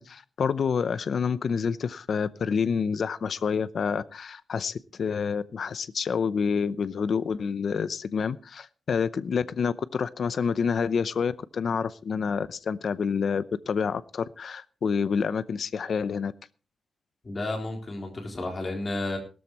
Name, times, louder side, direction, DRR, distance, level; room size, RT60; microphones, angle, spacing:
voice 1, 0.0-16.3, left 6 dB, 50° left, 15 dB, 0.6 m, -28 dB
voice 2, 17.2-19.2, left 2 dB, 30° left, 2 dB, 3.7 m, -32 dB
18.0 x 13.5 x 3.0 m, 0.34 s
wide cardioid pair, 170°, 0 cm